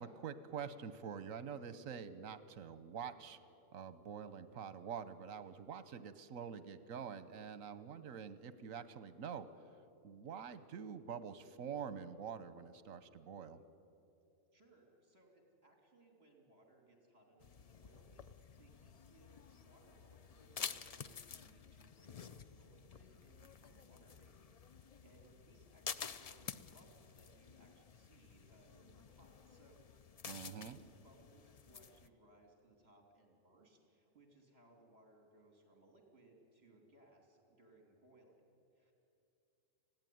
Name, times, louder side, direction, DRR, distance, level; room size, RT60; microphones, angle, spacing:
voice 1, 0.0-3.4 3.7-9.5 10.0-13.6 30.3-30.8, right 7 dB, 80° right, 14 dB, 1.3 m, -46 dB
voice 2, 14.5-38.9, right 2 dB, 50° right, 2 dB, 3.5 m, -66 dB
sound 1, 17.4-32.1, left 6 dB, 55° left, 0.4 m, -51 dB
20.0 x 15.5 x 9.4 m, 2.8 s
omnidirectional pair, 1.4 m